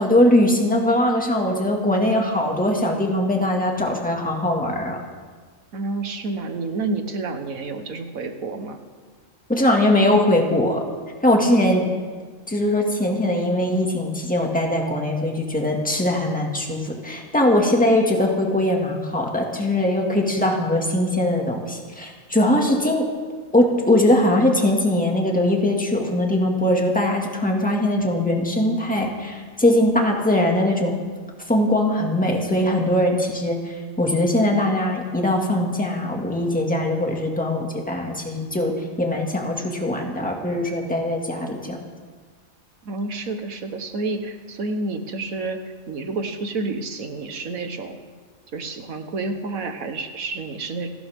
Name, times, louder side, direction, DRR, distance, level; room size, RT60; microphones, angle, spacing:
voice 1, 0.0-5.0 9.5-10.9 11.2-11.8 12.5-23.0 23.5-30.9 31.5-41.8, left 1 dB, 5° left, 0 dB, 2.1 m, -21 dB
voice 2, 5.7-8.8 11.5-12.1 42.8-45.6 45.9-48.0 48.5-50.9, right 3 dB, 90° right, 6 dB, 1.8 m, -29 dB
29.0 x 12.0 x 3.7 m, 1.5 s
omnidirectional pair, 1.4 m